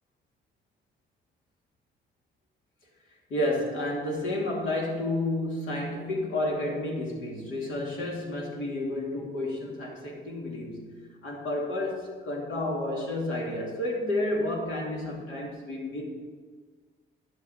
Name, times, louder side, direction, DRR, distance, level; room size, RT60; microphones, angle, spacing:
voice 1, 3.3-10.9 11.2-16.0, left 1 dB, 85° left, -2 dB, 2.5 m, -31 dB
10.5 x 7.4 x 5.2 m, 1.5 s
cardioid pair, 90°, 20 cm